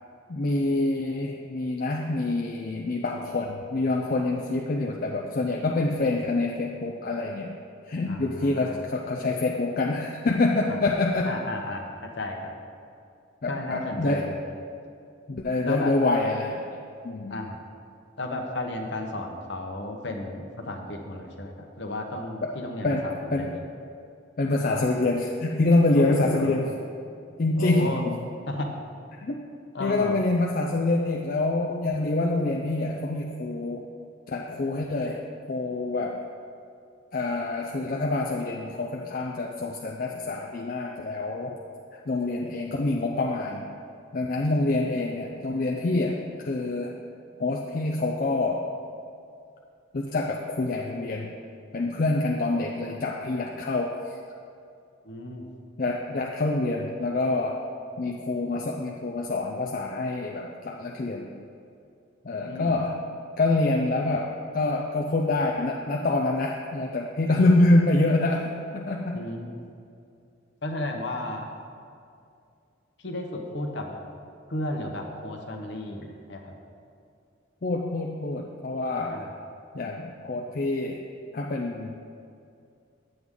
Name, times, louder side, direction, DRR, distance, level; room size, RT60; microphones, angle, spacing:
voice 1, 0.3-7.5 7.9-11.4 13.4-14.3 15.3-16.6 17.0-17.4 22.4-22.5 22.8-23.6 24.4-26.7 27.4-28.2 29.2-29.5 29.8-33.9 34.3-36.3 37.1-41.6 41.9-43.7 44.1-47.0 47.4-48.7 49.9-51.3 51.7-54.0 55.8-57.6 58.0-61.3 62.2-63.0 63.4-69.2 77.6-79.3 79.7-81.0 81.3-81.9, left 2 dB, 45° left, 0 dB, 0.5 m, -26 dB
voice 2, 8.1-8.8 10.7-10.8 11.2-12.5 13.5-14.4 15.6-15.9 17.3-17.6 18.2-23.5 26.0-26.6 27.6-28.1 28.5-28.7 29.7-30.2 55.0-55.5 62.4-62.8 69.1-69.6 70.6-71.5 73.0-74.0 74.5-76.5 79.1-79.3, left 2 dB, 65° left, 2 dB, 0.9 m, -33 dB
9.7 x 7.7 x 3.6 m, 2.4 s
head